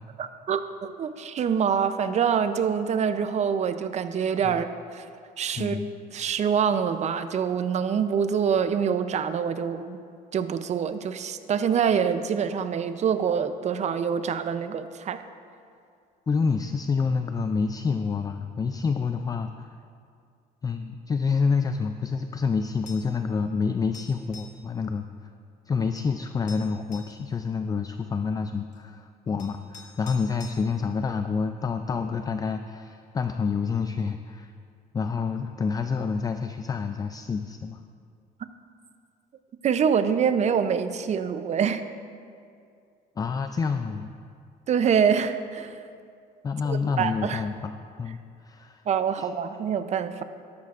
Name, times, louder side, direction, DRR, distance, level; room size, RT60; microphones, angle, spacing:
voice 1, 0.2-5.1 5.4-5.8 6.1-10.0 10.3-15.2 39.6-41.8 44.7-45.7 46.7-47.4 48.9-50.2, right 7 dB, 45° right, 10 dB, 0.6 m, -25 dB
voice 2, 5.6-5.9 16.3-19.7 20.6-25.0 25.7-34.5 34.9-37.8 43.2-44.1 46.4-47.7 48.0-48.2 48.4-48.8 49.2-49.3, left 5 dB, 20° left, 8 dB, 0.3 m, -28 dB
sound 1, 22.9-23.2 23.9-24.6 26.0-26.1 26.5-27.2 28.7-28.8 29.4-30.6, left 5 dB, 45° left, 1.4 m, -46 dB
13.0 x 12.5 x 2.5 m, 2.3 s
cardioid pair, 110°, 17 cm